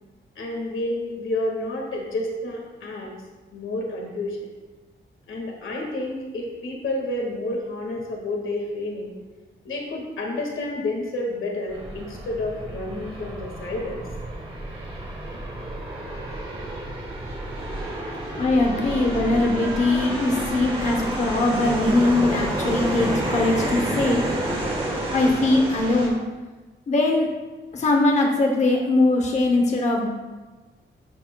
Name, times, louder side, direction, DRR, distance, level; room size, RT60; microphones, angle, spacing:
voice 1, 0.4-3.1 3.5-4.5 5.3-9.1 9.6-14.1, left 2 dB, 80° left, -1 dB, 1.8 m, -30 dB
sound 1, 11.7-26.1, right 1 dB, 25° right, 1.9 m, -30 dB
voice 2, 18.4-24.2 25.1-26.2 26.9-27.3 27.7-30.1, left 2 dB, 35° left, 2 dB, 0.8 m, -21 dB
10.5 x 6.9 x 2.3 m, 1.2 s
wide cardioid pair, 150°, 20 cm